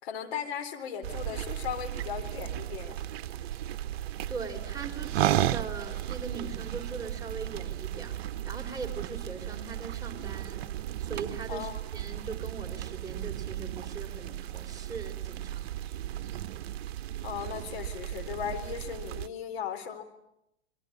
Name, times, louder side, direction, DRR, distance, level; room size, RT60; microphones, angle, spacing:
voice 1, 0.0-3.0 11.5-11.8 17.2-20.0, left 8 dB, 60° left, 7 dB, 3.8 m, -37 dB
sound 1, 1.0-19.3, right 12 dB, 60° right, 1.0 m, -35 dB
voice 2, 4.3-15.7, right 4 dB, 10° right, 0 dB, 4.6 m, -41 dB
29.0 x 23.0 x 8.5 m, 0.81 s
hypercardioid pair, 110°, 36 cm